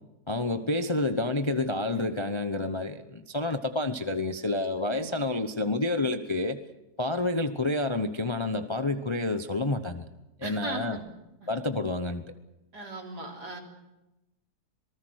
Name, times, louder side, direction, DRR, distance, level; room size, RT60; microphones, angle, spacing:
voice 1, 0.3-6.6 7.0-10.1 10.4-11.0 11.5-12.3, left 2 dB, 25° left, 8 dB, 0.6 m, -29 dB
voice 2, 4.8-5.2 10.4-11.0 11.4-11.5 12.7-13.6, right 2 dB, 70° right, 1 dB, 4.3 m, -38 dB
26.5 x 19.5 x 6.4 m, 0.97 s
omnidirectional pair, 1.8 m